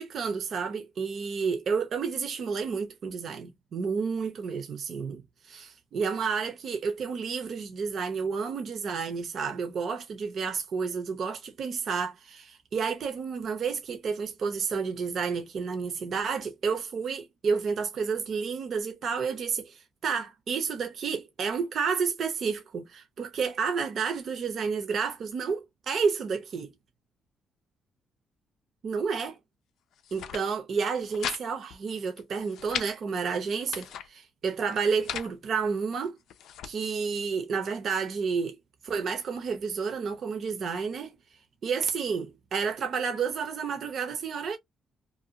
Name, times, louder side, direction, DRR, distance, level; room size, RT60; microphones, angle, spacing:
voice 1, 0.0-26.7 28.8-29.4 30.1-36.2 36.6-38.6 38.8-41.1 41.6-44.6, right 5 dB, 60° right, 0.6 m, -30 dB
sound 1, 29.9-30.4 30.8-31.4 31.7-31.8 32.2-32.9 33.4-34.1 34.7-35.3 36.0-36.7, left 9 dB, 80° left, 0.4 m, -37 dB
2.6 x 2.3 x 2.7 m
cardioid pair, 90°, 0 cm